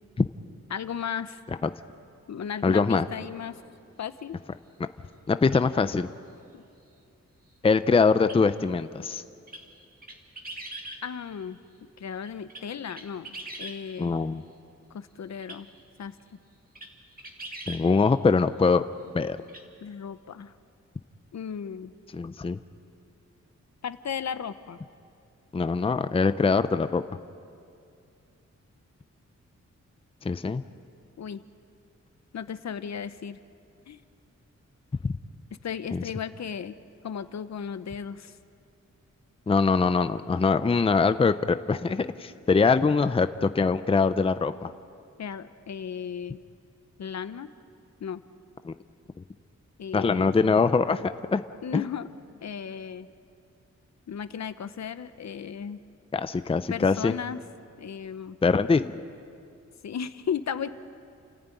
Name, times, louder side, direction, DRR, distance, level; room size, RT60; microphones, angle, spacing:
voice 1, 0.7-1.4 2.3-3.5 4.0-4.4 6.5-6.6 11.0-11.6 12.0-14.1 14.9-15.7 16.0-16.1 19.8-20.5 21.3-21.9 23.8-24.8 31.2-31.4 32.3-33.4 33.9-34.0 35.6-36.7 37.0-38.3 45.2-46.4 47.0-47.5 48.0-48.2 49.8-50.3 51.6-52.1 52.4-53.1 54.1-55.8 56.7-57.4 57.8-58.4 59.8-60.7, left 7 dB, 65° left, 12 dB, 0.9 m, -35 dB
voice 2, 2.6-3.1 5.3-6.1 7.6-9.2 14.0-14.4 17.7-18.8 19.1-19.4 22.1-22.6 25.5-27.0 30.2-30.6 35.9-36.0 39.5-44.7 48.6-48.7 49.9-51.4 51.7-51.8 56.1-57.1 58.4-58.9, left 4 dB, 20° left, 12 dB, 0.5 m, -23 dB
sound 1, 5.5-5.6 8.2-8.4 9.5-9.6 10.0-11.0 12.3-13.8 15.4-15.6 16.2-16.3 16.8-16.9 17.2-17.8 19.5-19.6, right 2 dB, 30° right, 2.3 m, -41 dB
30.0 x 14.5 x 9.3 m, 2.5 s
wide cardioid pair, 145°, 29 cm